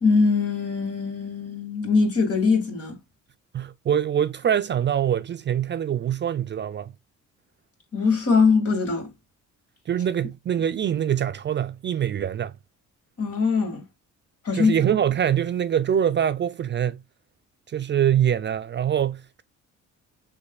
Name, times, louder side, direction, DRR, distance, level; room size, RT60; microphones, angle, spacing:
voice 1, 0.0-3.0 7.9-9.1 13.2-13.8 14.4-14.8, left 4 dB, 50° left, 2.1 m, -22 dB
voice 2, 3.5-6.9 9.9-12.6 14.5-17.0 17.7-19.4, right 9 dB, 40° right, 0.4 m, -24 dB
6.3 x 3.2 x 2.3 m
cardioid pair, 90°, 30 cm